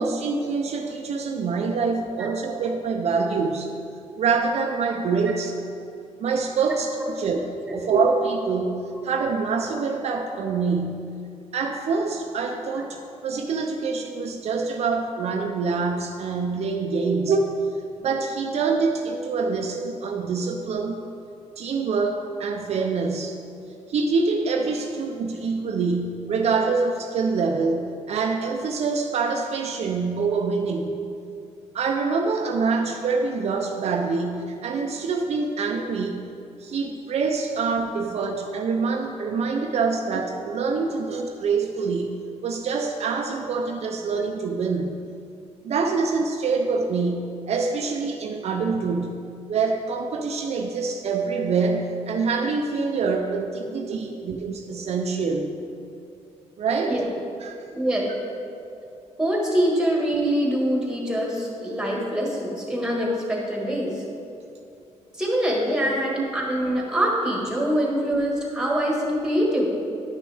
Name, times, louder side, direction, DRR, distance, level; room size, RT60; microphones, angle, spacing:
voice 1, 0.0-3.7 4.2-5.5 6.2-7.4 7.7-11.1 11.5-17.4 18.0-21.0 21.6-23.4 23.9-31.0 31.7-36.2 36.6-42.1 42.4-44.9 45.6-49.2 49.5-55.6 56.6-57.0 57.4-57.6 66.8-66.9, right 4 dB, 60° right, 3 dB, 0.5 m, -25 dB
voice 2, 59.2-64.0 65.1-69.7, equal, 5° right, -2 dB, 1.6 m, -24 dB
10.5 x 6.1 x 3.4 m, 2.6 s
cardioid pair, 135°, 12 cm